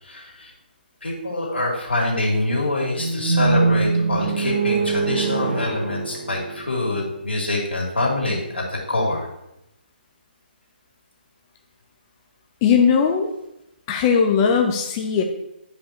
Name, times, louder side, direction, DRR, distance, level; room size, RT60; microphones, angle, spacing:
voice 1, 0.0-0.5 1.0-9.3, left 2 dB, 90° left, -3 dB, 2.7 m, -25 dB
sound 1, 3.0-7.1, right 4 dB, 70° right, 1.6 m, -23 dB
voice 2, 12.6-13.3 13.9-15.2, left 6 dB, 25° left, 2 dB, 0.6 m, -18 dB
11.5 x 5.2 x 3.0 m, 0.87 s
hypercardioid pair, 150°, 6 cm